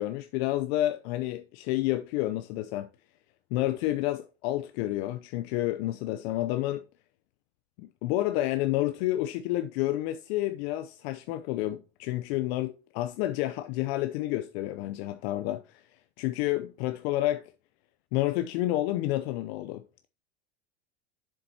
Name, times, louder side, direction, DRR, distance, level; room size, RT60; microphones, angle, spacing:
voice 1, 0.0-2.9 3.5-6.8 7.8-15.6 16.2-17.4 18.1-19.8, left 15 dB, 65° left, 0.7 m, -29 dB
7.3 x 7.3 x 2.8 m
supercardioid pair, 100°, 34 cm